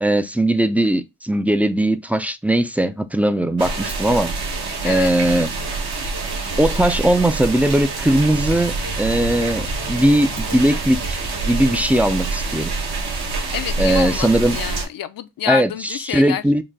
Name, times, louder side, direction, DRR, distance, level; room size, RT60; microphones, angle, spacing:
voice 1, 0.0-4.3 4.8-5.5 6.6-12.7 13.8-14.6 15.5-15.7 16.1-16.6, right 1 dB, 5° right, 0.3 m, -19 dB
sound 1, 3.6-14.9, right 3 dB, 70° right, 1.2 m, -26 dB
voice 2, 4.8-5.1 13.5-16.6, left 11 dB, 60° left, 0.5 m, -28 dB
3.9 x 2.2 x 3.3 m
cardioid pair, 60°, 40 cm